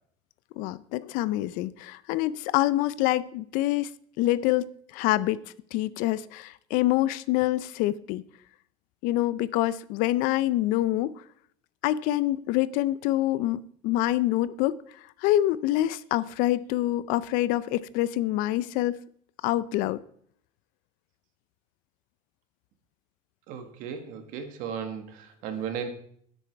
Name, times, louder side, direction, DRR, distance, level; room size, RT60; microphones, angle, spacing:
voice 1, 0.6-3.9 4.2-4.7 4.9-5.4 5.7-8.2 9.0-11.2 11.8-14.8 15.2-19.0 19.4-20.0, left 15 dB, 70° left, 0.5 m, -26 dB
voice 2, 23.5-25.9, right 7 dB, 65° right, 1.7 m, -35 dB
9.9 x 8.6 x 4.5 m
cardioid pair, 140°, 14 cm